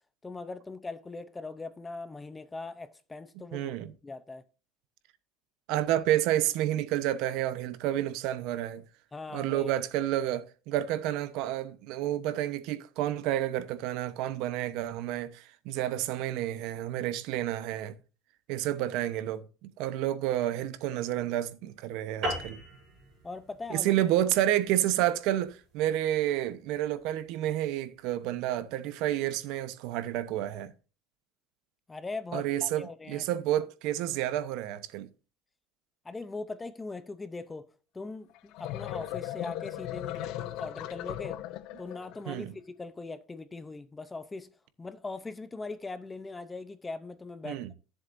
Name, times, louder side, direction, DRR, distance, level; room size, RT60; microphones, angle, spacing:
voice 1, 0.2-3.7 4.0-4.4 9.1-9.7 23.2-23.9 31.9-33.2 36.0-41.4 41.8-44.5 44.8-47.7, left 3 dB, 10° left, 0.6 m, -40 dB
voice 2, 3.5-3.9 5.7-8.9 9.3-18.0 18.5-22.6 23.7-30.7 32.3-35.1 42.3-42.5 47.4-47.7, right 13 dB, 60° right, 0.9 m, -30 dB
sound 1, 22.2-27.0, right 1 dB, 40° right, 5.5 m, -39 dB
sound 2, 38.3-42.2, left 14 dB, 55° left, 0.6 m, -37 dB
14.0 x 7.4 x 2.6 m
cardioid pair, 165°, 0 cm